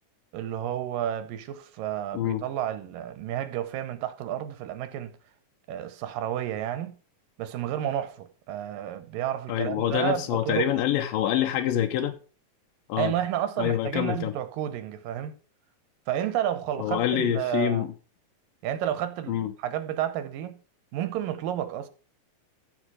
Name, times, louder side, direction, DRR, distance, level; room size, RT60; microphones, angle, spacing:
voice 1, 0.3-5.2 5.7-7.0 7.4-10.8 13.0-15.3 16.1-17.9 18.6-20.6 20.9-21.9, right 11 dB, 85° right, 2.8 m, -31 dB
voice 2, 9.5-12.2 12.9-13.1 13.6-14.3 16.8-17.9 19.3-19.5, left 11 dB, 85° left, 2.6 m, -26 dB
14.5 x 4.9 x 5.0 m
omnidirectional pair, 3.9 m